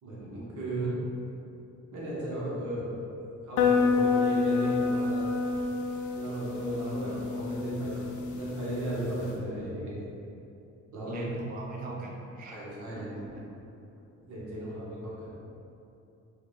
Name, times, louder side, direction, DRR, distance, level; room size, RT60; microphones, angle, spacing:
voice 1, 0.0-0.9 1.9-2.9 3.4-5.3 6.1-9.9 10.9-11.3 12.5-13.1 14.3-15.3, right 1 dB, 80° right, -7 dB, 1.3 m, -35 dB
sound 1, 3.6-9.3, left 4 dB, 80° left, 0.5 m, -28 dB
voice 2, 6.8-7.4 11.1-12.6 12.9-13.4, right 4 dB, 30° right, -2 dB, 0.5 m, -41 dB
4.9 x 2.5 x 3.3 m, 2.7 s
cardioid pair, 90°, 30 cm